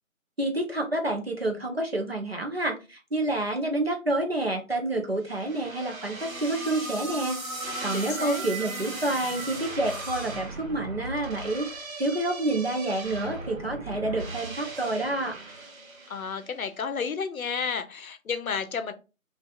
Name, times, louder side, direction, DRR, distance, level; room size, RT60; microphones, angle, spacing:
voice 1, 0.4-11.7 12.0-15.4, right 2 dB, 50° right, 0.6 m, -28 dB
sound 1, 5.3-16.6, right 2 dB, 75° right, 1.0 m, -37 dB
voice 2, 7.9-8.4 16.1-18.9, left 6 dB, 85° left, 0.6 m, -32 dB
2.5 x 2.4 x 2.3 m
figure-of-eight pair, 180°, 41 cm